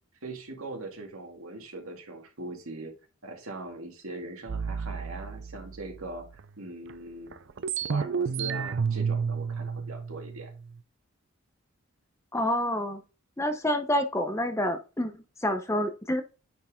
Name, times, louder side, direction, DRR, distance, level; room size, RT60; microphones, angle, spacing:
voice 1, 0.2-2.9 3.2-6.3 6.6-7.4 7.9-10.5, right 2 dB, 75° right, 2 dB, 2.1 m, -40 dB
wogglebubbles mgreel, 4.5-6.4 6.9-7.0 7.3-10.8, right 6 dB, 55° right, 0.4 m, -31 dB
voice 2, 12.3-13.0 13.4-16.2, left 1 dB, 15° left, 8 dB, 0.7 m, -28 dB
9.5 x 4.6 x 3.6 m, 0.32 s
head